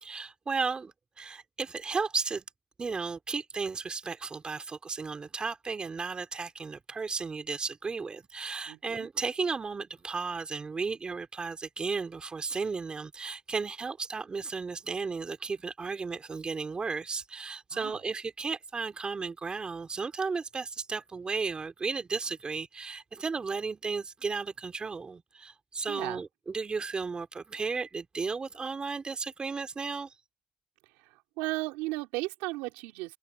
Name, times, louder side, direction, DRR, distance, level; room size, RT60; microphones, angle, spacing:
voice 1, 0.0-2.4 2.8-30.1, right 4 dB, 35° right, 3.0 m, -34 dB
voice 2, 8.7-9.1 17.7-18.0 25.9-26.2 31.4-33.2, right 21 dB, 90° right, 3.8 m, -35 dB
open air
supercardioid pair, 65°, 3 cm